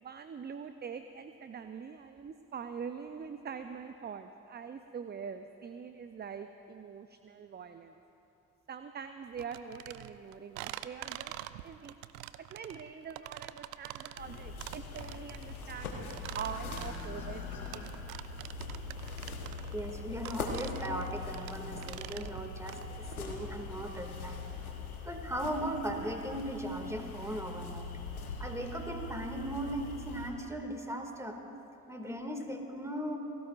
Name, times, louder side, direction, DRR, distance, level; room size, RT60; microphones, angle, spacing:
voice 1, 0.0-8.0 8.7-11.3 11.6-12.0 12.4-18.0, right 6 dB, 25° right, 9 dB, 0.6 m, -44 dB
sound 1, 9.4-22.9, right 16 dB, 65° right, 0.6 m, -45 dB
sound 2, 14.2-30.3, left 3 dB, 85° left, 1.3 m, -42 dB
voice 2, 19.7-24.5 25.0-27.9 28.4-31.4 31.9-33.2, equal, 5° right, 3 dB, 2.2 m, -38 dB
28.5 x 19.0 x 2.5 m, 2.9 s
figure-of-eight pair, 45°, 42 cm